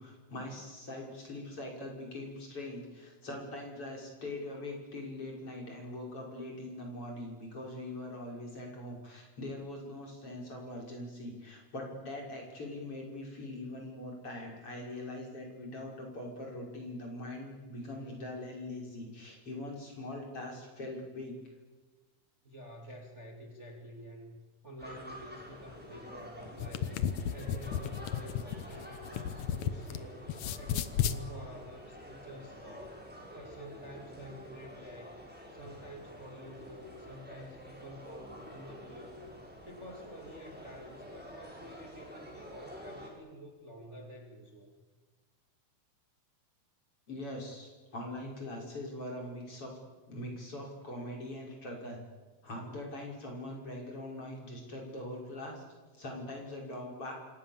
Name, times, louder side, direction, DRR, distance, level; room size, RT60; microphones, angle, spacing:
voice 1, 0.0-21.4 47.1-49.7 50.1-52.0 52.4-55.6 55.9-57.1, left 1 dB, 35° left, 0 dB, 6.5 m, -42 dB
voice 2, 22.4-27.0 27.3-30.3 30.6-33.1 33.3-35.2 35.5-39.2 39.6-44.7, equal, 20° right, 1 dB, 2.8 m, -49 dB
sound 1, 24.8-43.1, equal, ahead, 6.3 m, -49 dB
sound 2, 26.5-30.0 30.3-31.2, left 9 dB, 65° left, 2.1 m, -33 dB
26.5 x 26.5 x 7.4 m, 1.3 s
omnidirectional pair, 4.2 m